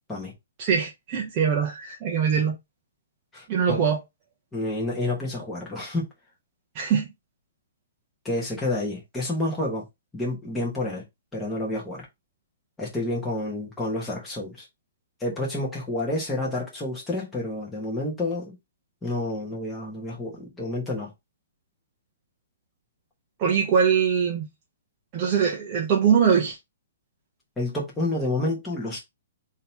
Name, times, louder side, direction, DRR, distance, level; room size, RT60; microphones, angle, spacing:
voice 1, 0.6-2.6 3.5-4.0 6.7-7.1 23.4-24.5 25.1-26.6, right 7 dB, 20° right, 0.7 m, -22 dB
voice 2, 3.3-3.8 4.5-6.1 8.2-9.8 10.1-11.0 11.3-12.1 12.8-14.6 15.2-18.5 19.0-21.1 27.6-29.0, left 2 dB, 5° left, 1.1 m, -29 dB
3.8 x 2.8 x 4.4 m
hypercardioid pair, 180°, 0 cm